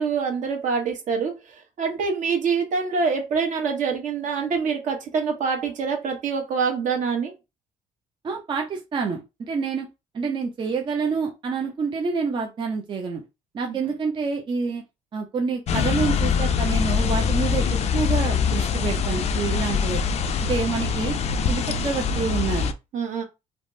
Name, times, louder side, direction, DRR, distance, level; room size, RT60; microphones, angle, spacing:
voice 1, 0.0-7.3 13.6-13.8 22.9-23.2, right 5 dB, 60° right, 1.0 m, -25 dB
voice 2, 8.2-9.9 10.1-13.2 13.5-14.8 15.1-17.7 17.9-20.0 20.4-21.2 21.5-22.7, right 5 dB, 35° right, 0.5 m, -27 dB
sound 1, 15.7-22.7, left 6 dB, 45° left, 0.4 m, -23 dB
3.3 x 2.0 x 2.6 m
cardioid pair, 105°, 15 cm